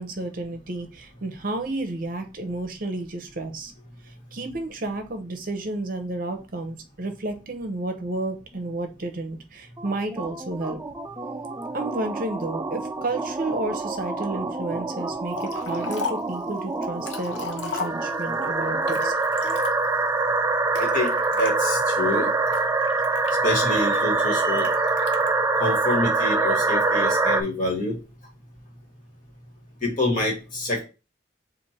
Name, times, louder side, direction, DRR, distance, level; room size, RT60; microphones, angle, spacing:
voice 1, 0.0-3.7 4.3-10.8 11.7-19.1, right 2 dB, 50° right, 7 dB, 0.8 m, -31 dB
sound 1, 9.8-27.4, right 3 dB, 15° right, 0.3 m, -25 dB
Liquid, 15.3-16.3 16.8-18.3 18.8-20.0 20.7-21.5 22.1-23.8 24.6-25.3, left 5 dB, 80° left, 0.8 m, -35 dB
voice 2, 20.8-21.1 21.4-22.3 23.4-24.7 25.6-28.0 29.8-30.8, left 1 dB, 45° left, -1 dB, 1.6 m, -26 dB
4.3 x 2.6 x 4.4 m, 0.31 s
head